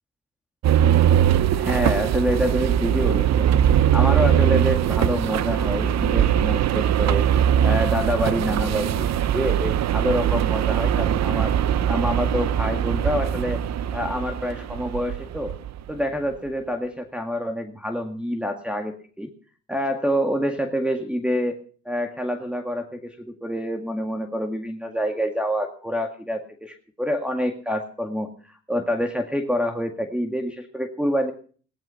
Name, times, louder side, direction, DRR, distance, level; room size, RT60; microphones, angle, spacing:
sound 1, 0.6-15.8, right 10 dB, 60° right, 0.8 m, -21 dB
voice 1, 1.5-3.5 3.9-7.2 7.6-11.6 11.9-13.6 13.9-15.5 15.9-19.3 19.7-21.6 21.9-28.3 28.7-31.3, equal, 5° right, 2 dB, 1.9 m, -27 dB
18.0 x 11.0 x 5.7 m, 0.43 s
cardioid pair, 90°, 30 cm